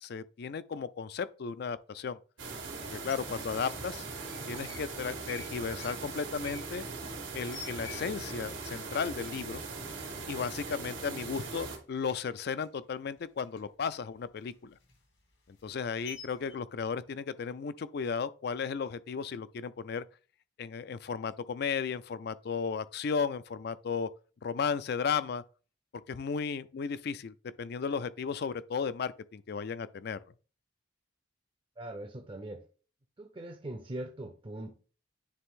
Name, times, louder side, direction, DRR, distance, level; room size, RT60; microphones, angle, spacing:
voice 1, 0.0-2.2 2.8-4.1 4.5-6.9 7.3-9.6 10.3-14.7 15.5-20.0 20.6-24.1 24.4-25.4 26.1-30.2, left 6 dB, 55° left, 0.4 m, -35 dB
sound 1, 2.4-11.8, right 3 dB, 90° right, 2.0 m, -40 dB
sound 2, 3.0-3.2 4.1-4.9 5.2-8.4 8.7-8.8 9.1-9.6 10.0-10.1 10.5-11.2 11.5-13.9 14.3-16.5, left 4 dB, 80° left, 2.1 m, -49 dB
voice 2, 31.8-32.6 33.2-34.7, right 1 dB, 25° right, 0.5 m, -41 dB
9.5 x 3.3 x 3.7 m
head